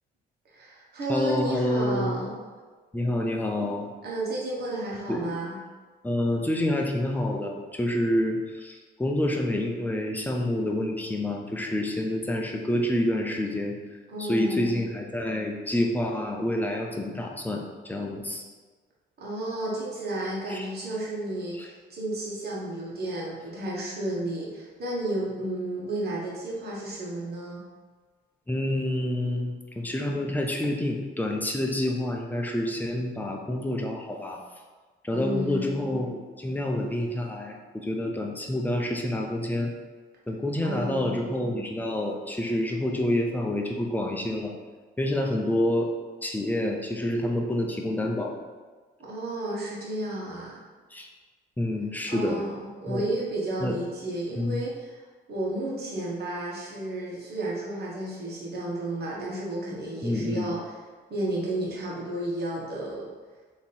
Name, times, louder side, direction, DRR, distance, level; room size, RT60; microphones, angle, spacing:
voice 1, 0.5-2.4 4.0-5.6 14.1-14.8 19.2-27.6 35.1-36.0 40.6-41.2 49.0-50.6 52.1-55.0 55.3-60.7 61.1-63.1, right 1 dB, 55° right, -5 dB, 1.4 m, -32 dB
voice 2, 1.1-2.2 2.9-3.9 5.1-5.2 6.0-13.7 14.2-18.4 20.5-20.7 21.6-21.7 28.5-34.4 35.0-39.7 40.3-44.5 45.0-45.9 46.2-48.3 50.9-51.1 51.6-52.4 52.9-53.0 53.6-53.8 54.4-54.6 60.0-60.5, left 1 dB, 10° left, 0 dB, 0.7 m, -28 dB
3.5 x 3.0 x 4.3 m, 1.4 s
cardioid pair, 90°, 20 cm